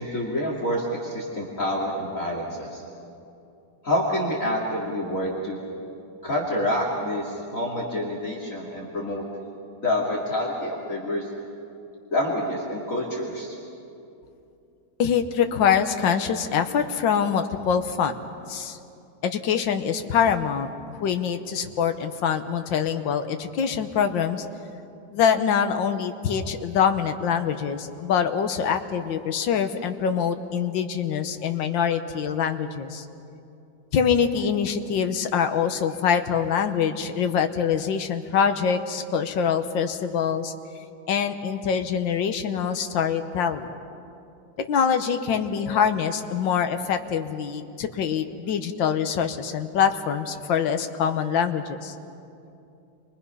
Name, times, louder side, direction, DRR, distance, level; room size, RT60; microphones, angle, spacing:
voice 1, 0.0-2.8 3.8-5.6 6.2-9.2 9.8-11.2 12.1-13.5, left 1 dB, 45° left, -3 dB, 2.8 m, -27 dB
voice 2, 15.0-18.2 18.5-18.8 19.2-24.4 25.1-33.1 33.9-40.5 41.1-43.7 44.6-51.9, left 7 dB, 80° left, 7 dB, 1.8 m, -24 dB
30.0 x 23.5 x 5.6 m, 2.7 s
omnidirectional pair, 2.0 m